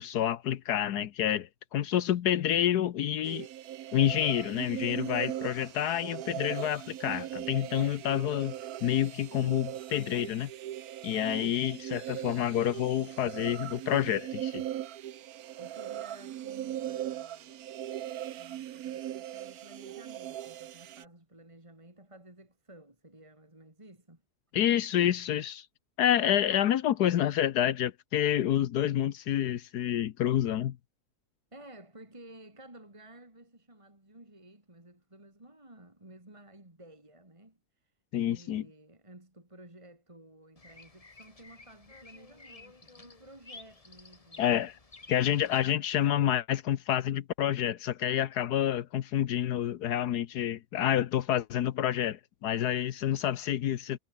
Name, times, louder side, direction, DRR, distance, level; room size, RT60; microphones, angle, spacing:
voice 1, 0.0-3.5 3.9-8.5 8.8-10.5 11.0-14.6 24.5-25.7 26.0-30.8 38.1-38.6 44.4-44.8 45.1-54.0, left 11 dB, 80° left, 1.4 m, -28 dB
sound 1, 3.2-21.0, right 12 dB, 75° right, 1.2 m, -39 dB
voice 2, 15.6-17.7 18.3-24.2 26.3-26.5 31.5-37.9 38.3-44.6, right 1 dB, 20° right, 3.2 m, -53 dB
Bird vocalization bird call bird song, 40.6-45.7, left 3 dB, 25° left, 1.5 m, -52 dB
omnidirectional pair, 1.7 m